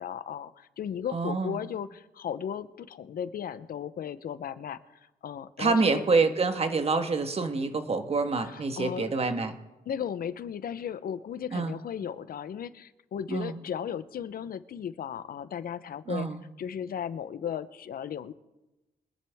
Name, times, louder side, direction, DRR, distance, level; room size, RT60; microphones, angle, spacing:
voice 1, 0.0-4.8 5.2-6.0 8.5-9.1 9.9-16.3 16.6-18.3, left 8 dB, 70° left, 14 dB, 0.7 m, -35 dB
voice 2, 1.1-1.6 5.6-9.5 11.5-11.7 13.3-13.6 16.1-16.4, right 4 dB, 40° right, 7 dB, 1.4 m, -27 dB
23.5 x 10.0 x 3.5 m, 1.0 s
cardioid pair, 85°, 15 cm